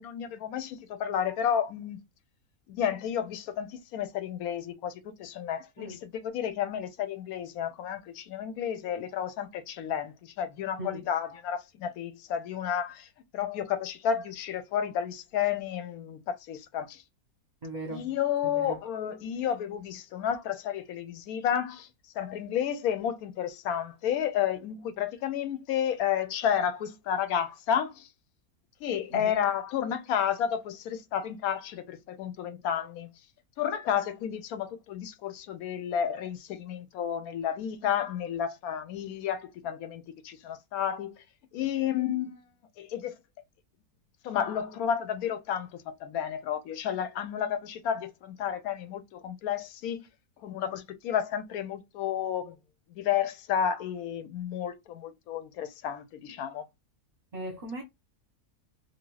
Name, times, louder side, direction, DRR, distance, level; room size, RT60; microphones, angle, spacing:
voice 1, 0.0-2.0 2.7-13.1 13.3-17.0 17.9-21.9 22.1-28.1 28.8-33.1 33.6-41.2 41.5-42.5 42.8-43.2 44.2-50.0 50.4-52.6 52.9-56.7, left 9 dB, 75° left, 1.0 m, -31 dB
voice 2, 17.6-18.1 18.4-18.8 29.1-29.3 57.3-57.8, right 1 dB, 35° right, 0.8 m, -38 dB
2.8 x 2.4 x 3.0 m
omnidirectional pair, 1.7 m